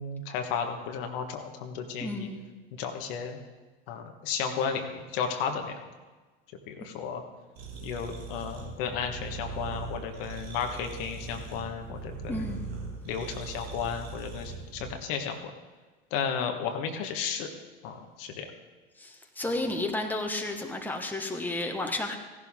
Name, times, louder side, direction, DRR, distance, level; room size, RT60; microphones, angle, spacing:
voice 1, 0.0-2.3 2.8-3.4 3.9-5.9 6.7-7.2 7.8-12.5 13.0-15.4 16.1-17.5 17.8-18.5, left 6 dB, 65° left, 4 dB, 1.5 m, -33 dB
voice 2, 2.0-2.4 12.3-12.7 19.0-22.2, left 2 dB, 5° left, 3 dB, 1.4 m, -32 dB
sound 1, 7.5-14.9, right 4 dB, 85° right, 2.2 m, -40 dB
15.5 x 11.0 x 3.7 m, 1.3 s
hypercardioid pair, 90°, 29 cm